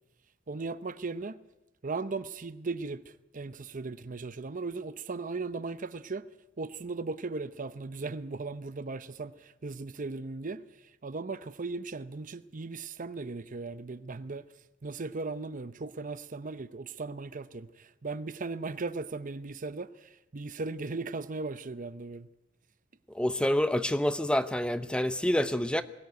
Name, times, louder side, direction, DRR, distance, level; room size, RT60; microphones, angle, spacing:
voice 1, 0.5-1.4 1.8-6.3 6.6-14.5 14.8-22.3, right 3 dB, 45° right, 0.7 m, -37 dB
voice 2, 23.1-25.8, left 1 dB, 5° left, 0.7 m, -27 dB
21.5 x 16.5 x 9.3 m
head